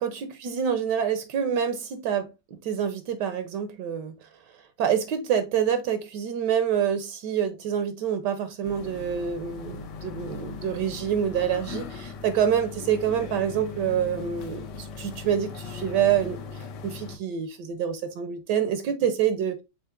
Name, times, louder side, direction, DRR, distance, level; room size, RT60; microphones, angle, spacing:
voice 1, 0.0-4.1 4.8-16.4 16.8-19.6, right 8 dB, 75° right, 1.3 m, -27 dB
sound 1, 8.6-17.2, left 5 dB, 75° left, 1.4 m, -39 dB
5.6 x 3.9 x 2.4 m
omnidirectional pair, 1.9 m